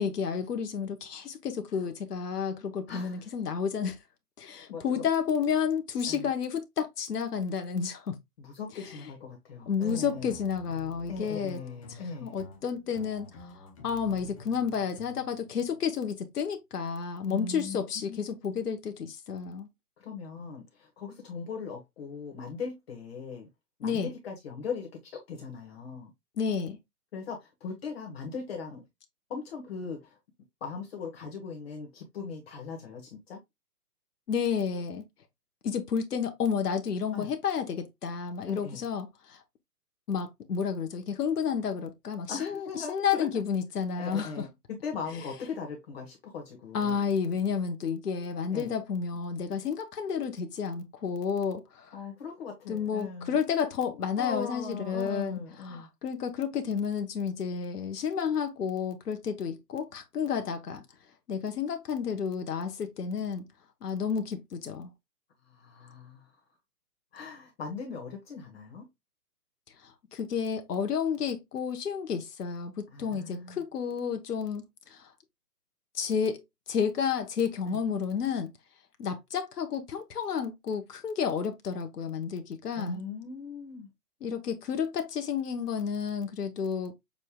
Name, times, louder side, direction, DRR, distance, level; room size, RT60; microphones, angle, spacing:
voice 1, 0.0-4.0 4.4-8.2 9.7-11.6 11.9-19.7 23.8-24.1 26.4-26.8 34.3-35.0 35.6-39.4 40.1-44.5 46.7-51.9 52.7-55.4 55.7-60.8 61.3-63.5 63.8-64.9 69.8-75.1 75.9-78.5 79.0-83.0 84.2-86.9, left 7 dB, 70° left, 1.2 m, -31 dB
voice 2, 2.9-3.3 4.7-5.0 6.1-6.3 8.4-10.4 11.1-12.4 17.2-17.8 18.1-18.4 20.0-23.5 23.8-26.1 27.1-28.8 29.3-30.2 30.6-33.4 37.1-37.3 38.5-38.8 42.3-43.3 44.0-44.5 44.8-47.1 48.5-48.7 51.9-53.4 54.2-55.9 65.4-66.3 67.1-68.9 72.9-73.6 77.6-77.8 82.8-83.9, left 5 dB, 40° left, 1.5 m, -39 dB
sound 1, 9.8-16.2, left 3 dB, 20° left, 0.8 m, -50 dB
6.7 x 3.3 x 2.3 m
hypercardioid pair, 150°, 47 cm